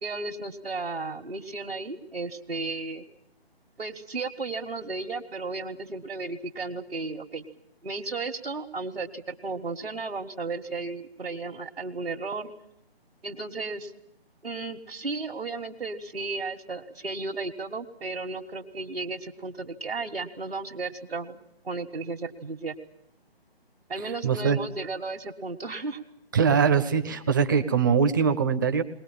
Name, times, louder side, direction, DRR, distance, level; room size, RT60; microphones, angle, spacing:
voice 1, 0.0-3.1 3.8-7.4 7.8-12.5 13.2-13.9 14.4-22.8 23.9-26.0, right 3 dB, 65° right, 0 dB, 1.8 m, -34 dB
voice 2, 24.2-24.6 26.3-28.8, right 6 dB, 20° right, 9 dB, 0.8 m, -22 dB
21.0 x 19.0 x 8.8 m, 0.80 s
figure-of-eight pair, 145°, 31 cm